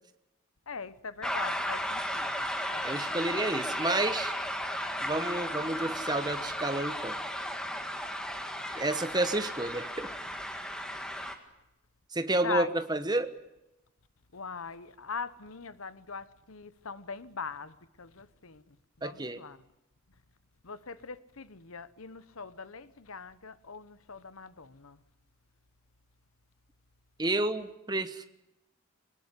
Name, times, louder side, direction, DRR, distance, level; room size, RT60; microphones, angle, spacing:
voice 1, 0.7-3.2 12.4-12.7 14.3-19.6 20.6-25.0, left 5 dB, 85° left, 1.2 m, -41 dB
sound 1, 1.2-11.4, equal, 5° left, 1.8 m, -35 dB
voice 2, 2.8-4.3 5.0-7.2 8.7-10.1 12.1-13.4 19.0-19.4 27.2-28.3, right 2 dB, 20° right, 1.2 m, -30 dB
22.5 x 19.0 x 9.9 m
head